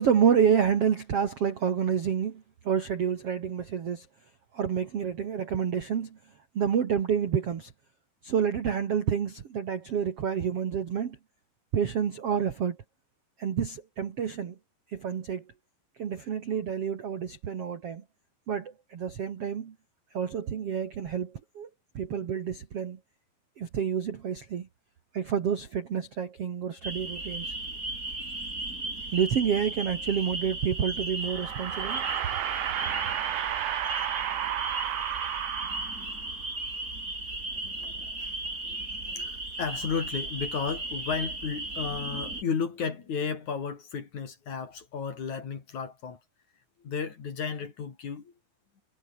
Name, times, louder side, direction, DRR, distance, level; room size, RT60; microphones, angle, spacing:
voice 1, 0.0-4.0 4.5-6.2 6.5-7.7 8.2-11.2 11.7-12.8 13.4-14.6 14.9-15.4 16.0-18.0 18.5-19.7 20.1-21.7 21.9-23.0 23.6-24.7 25.1-27.5 29.1-32.0, right 8 dB, 55° right, 1.6 m, -28 dB
sound 1, 26.8-42.4, right 2 dB, 15° right, 6.7 m, -36 dB
sound 2, 31.2-36.3, right 13 dB, 80° right, 4.0 m, -32 dB
voice 2, 37.5-38.8 39.1-46.2 46.8-48.3, left 6 dB, 45° left, 4.0 m, -34 dB
omnidirectional pair, 5.3 m